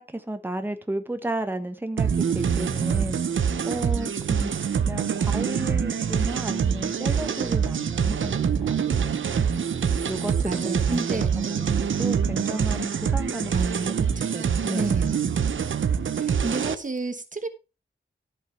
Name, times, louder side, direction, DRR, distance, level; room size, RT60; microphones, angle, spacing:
voice 1, 0.0-3.2 3.6-9.1 10.1-13.5 13.9-14.0 14.6-15.2, right 1 dB, 10° right, 1.4 m, -33 dB
sound 1, 2.0-16.8, right 7 dB, 85° right, 0.8 m, -25 dB
voice 2, 10.4-11.3 13.5-14.5 14.8-15.2 16.1-17.5, right 3 dB, 40° right, 1.3 m, -30 dB
14.0 x 5.6 x 4.5 m
wide cardioid pair, 105°, 20 cm